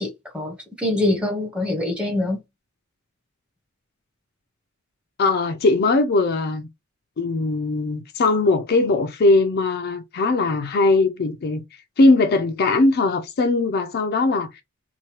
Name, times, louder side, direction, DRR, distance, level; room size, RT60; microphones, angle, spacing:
voice 1, 0.0-2.4, left 1 dB, 5° right, 0.8 m, -24 dB
voice 2, 5.2-6.7 7.2-11.6 12.0-14.5, left 3 dB, 50° left, 0.4 m, -20 dB
2.8 x 2.1 x 3.0 m
head